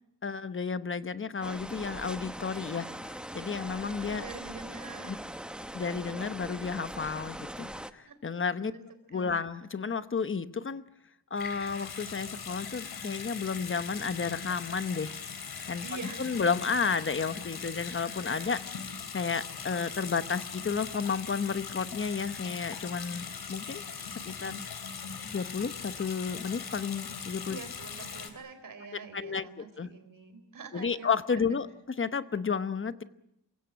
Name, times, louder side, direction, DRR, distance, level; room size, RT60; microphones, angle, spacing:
voice 1, 0.2-2.9 3.3-4.2 5.1-5.2 5.7-8.7 9.1-10.8 11.3-15.2 15.6-24.6 25.2-27.6 28.9-29.9 30.7-31.7 32.0-33.0, left 5 dB, 30° left, 12 dB, 1.0 m, -32 dB
sound 1, 1.4-7.9, equal, ahead, 0.9 m, -41 dB
voice 2, 4.0-5.2 8.0-8.1 8.6-8.8 9.1-9.5 15.8-16.4 27.5-31.1 31.4-31.6, right 4 dB, 50° right, 9 dB, 4.2 m, -45 dB
Water tap faucet / Sink (filling or washing) / Bathtub (filling or washing), 11.3-28.3, left 6 dB, 65° left, 3.5 m, -40 dB
28.5 x 16.5 x 9.0 m, 0.81 s
wide cardioid pair, 145°, 41 cm